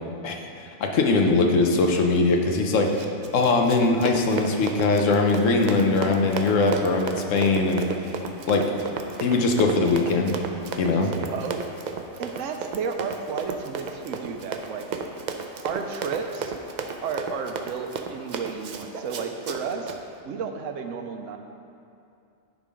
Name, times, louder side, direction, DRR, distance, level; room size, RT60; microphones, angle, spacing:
voice 1, 0.2-3.0 3.3-7.8 8.5-8.7 9.2-10.4 10.8-11.1, left 3 dB, 85° left, 3 dB, 1.1 m, -21 dB
Run, 2.8-20.0, right 5 dB, 65° right, 0.4 m, -34 dB
voice 2, 10.9-11.6 12.2-14.9 15.6-16.5 17.0-20.0 20.2-21.4, right 5 dB, 85° right, 5 dB, 1.0 m, -32 dB
10.5 x 3.8 x 5.0 m, 2.5 s
omnidirectional pair, 1.3 m